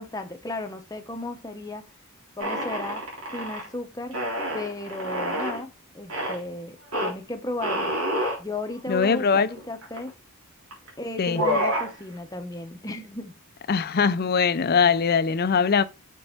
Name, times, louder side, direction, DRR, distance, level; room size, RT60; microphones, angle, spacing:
voice 1, 0.0-1.8 2.4-3.0 3.3-4.2 4.5-7.9 8.4-10.1 11.0-13.3, left 2 dB, 15° left, 0.8 m, -34 dB
sound 1, 2.4-3.7 4.1-5.6 6.1-6.4 6.9-7.1 7.6-8.4 9.0-9.1 9.3-10.1 10.7-10.9 11.2-11.9, equal, 75° right, 3.2 m, -28 dB
voice 2, 8.9-9.5 11.2-11.4 13.7-15.8, left 6 dB, 45° left, 0.5 m, -21 dB
6.5 x 4.5 x 4.5 m
head